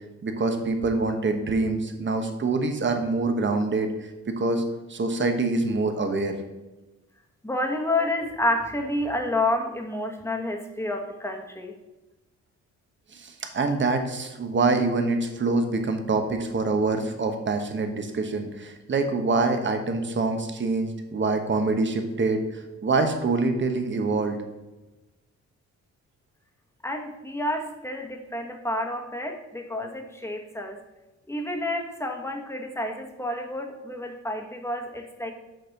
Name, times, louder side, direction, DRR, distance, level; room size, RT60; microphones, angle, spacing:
voice 1, 0.2-4.6 4.9-6.3 8.0-8.1 13.1-24.4, right 3 dB, 40° right, 6 dB, 1.2 m, -25 dB
voice 2, 7.4-11.7 26.8-30.8 31.3-35.3, left 1 dB, 10° left, 2 dB, 1.3 m, -29 dB
6.4 x 4.3 x 6.5 m, 1.1 s
cardioid pair, 90°, 30 cm